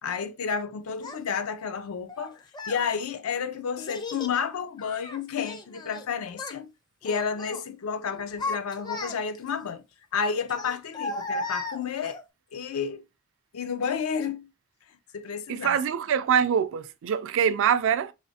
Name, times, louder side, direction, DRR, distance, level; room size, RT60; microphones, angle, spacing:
voice 1, 0.0-6.7 7.0-9.8 10.1-12.2 12.5-13.0 13.5-14.5 15.1-15.8, left 6 dB, 70° left, 0.5 m, -31 dB
Child speech kid speaking, 1.0-1.2 2.1-2.8 3.8-4.4 4.8-6.0 6.3-6.6 7.0-7.6 8.1-9.5 10.5-12.2, left 2 dB, 20° left, 0.5 m, -35 dB
voice 2, 15.5-18.1, right 8 dB, 65° right, 0.3 m, -24 dB
3.2 x 3.1 x 2.7 m
head